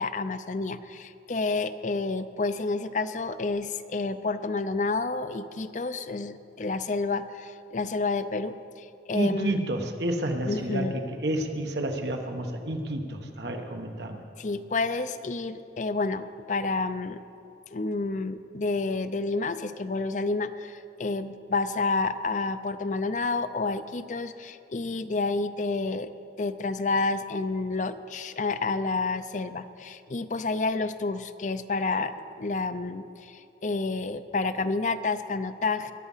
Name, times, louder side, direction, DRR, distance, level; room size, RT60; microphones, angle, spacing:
voice 1, 0.0-9.6 10.5-10.9 14.4-17.2 17.7-26.1 26.4-35.9, left 3 dB, 45° left, 12 dB, 0.5 m, -29 dB
voice 2, 9.1-14.2, right 1 dB, 80° right, 4 dB, 1.4 m, -30 dB
22.0 x 9.8 x 5.6 m, 2.6 s
head